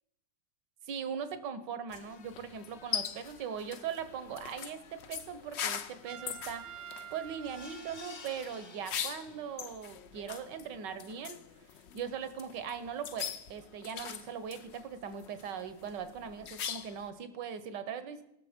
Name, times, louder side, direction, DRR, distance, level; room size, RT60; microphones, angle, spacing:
voice 1, 0.8-6.6 7.1-11.4 11.9-18.2, right 7 dB, 80° right, 12 dB, 1.6 m, -40 dB
sound 1, 1.9-17.1, left 8 dB, 65° left, 0.6 m, -42 dB
Trumpet, 6.1-8.7, right 10 dB, 60° right, 0.8 m, -48 dB
sound 2, 7.4-9.7 10.1-10.2 10.6-10.7, left 4 dB, 40° left, 1.0 m, -51 dB
18.5 x 6.5 x 5.0 m, 0.84 s
omnidirectional pair, 1.9 m